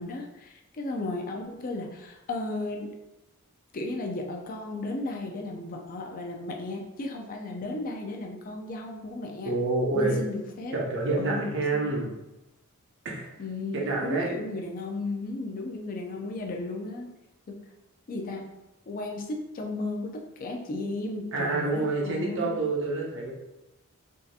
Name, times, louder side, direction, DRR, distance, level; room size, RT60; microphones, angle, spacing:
voice 1, 0.0-2.9 3.7-9.6 9.9-10.8 11.2-11.8 13.4-17.1 17.5-17.6 18.1-18.4 18.9-22.6, left 2 dB, 40° left, 1 dB, 0.4 m, -35 dB
voice 2, 9.5-10.2 10.7-12.1 13.0-13.3 13.7-14.3 21.3-23.3, right 3 dB, 55° right, -2 dB, 0.7 m, -27 dB
3.6 x 2.7 x 2.4 m, 0.96 s
head